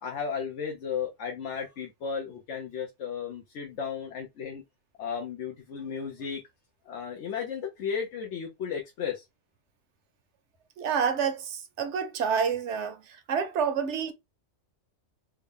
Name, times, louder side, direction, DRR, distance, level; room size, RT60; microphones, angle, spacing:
voice 1, 0.0-4.6 5.0-6.4 6.9-9.2, left 7 dB, 80° left, 1.1 m, -34 dB
voice 2, 10.8-14.1, right 6 dB, 75° right, 1.0 m, -28 dB
3.5 x 2.1 x 3.5 m
omnidirectional pair, 1.2 m